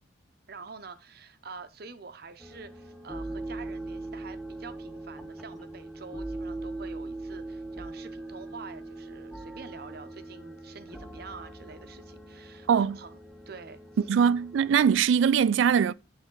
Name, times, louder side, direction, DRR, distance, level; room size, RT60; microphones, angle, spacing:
voice 1, 0.5-13.2 13.5-13.8, right 4 dB, 55° right, 0.7 m, -46 dB
sound 1, 2.4-15.0, right 2 dB, ahead, 0.6 m, -41 dB
voice 2, 14.1-15.9, right 7 dB, 75° right, 0.3 m, -22 dB
9.8 x 3.3 x 3.8 m
head